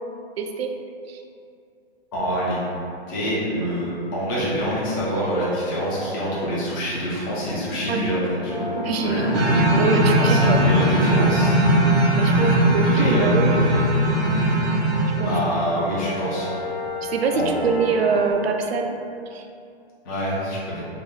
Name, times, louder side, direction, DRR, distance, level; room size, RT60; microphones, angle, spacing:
voice 1, 0.4-0.7 1.1-1.2 7.9-8.2 8.8-10.7 12.2-13.5 15.2-15.3 17.0-18.9 19.3-19.4, right 5 dB, 70° right, 4 dB, 0.5 m, -24 dB
voice 2, 2.1-2.6 3.1-8.7 9.0-9.5 10.2-11.6 12.3-13.8 15.2-16.6 17.3-17.7 20.0-20.8, equal, 20° left, -7 dB, 0.5 m, -26 dB
sound 1, 8.5-18.3, left 1 dB, 45° left, 0.8 m, -32 dB
sound 2, 9.3-15.5, right 1 dB, 85° right, 0.9 m, -19 dB
3.4 x 2.0 x 3.6 m, 2.5 s
hypercardioid pair, 150°, 33 cm